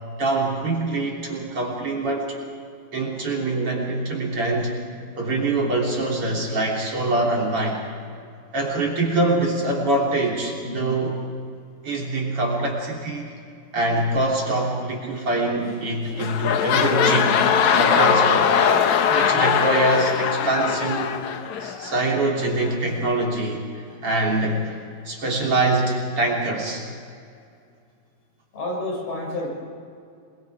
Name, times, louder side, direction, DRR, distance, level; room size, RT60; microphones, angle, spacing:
voice 1, 0.2-2.3 2.9-4.7 5.2-7.8 8.5-11.2 11.8-13.3 13.7-17.4 17.8-18.5 19.1-21.1 21.6-24.8 25.1-26.8, right 2 dB, 40° right, -2 dB, 4.0 m, -24 dB
sound 1, 15.6-15.9 16.1-22.0 22.7-22.8, left 7 dB, 65° left, 2.2 m, -20 dB
voice 2, 28.5-29.5, left 2 dB, 90° left, -2 dB, 8.4 m, -29 dB
26.5 x 22.5 x 4.9 m, 2.3 s
omnidirectional pair, 4.2 m